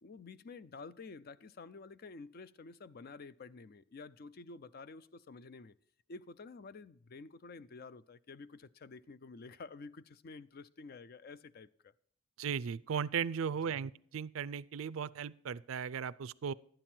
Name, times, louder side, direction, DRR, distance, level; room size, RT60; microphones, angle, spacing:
voice 1, 0.0-5.7 6.1-11.9 13.7-13.8, left 4 dB, 50° left, 0.4 m, -50 dB
voice 2, 12.4-16.5, right 7 dB, 80° right, 0.4 m, -37 dB
11.5 x 9.1 x 4.3 m
head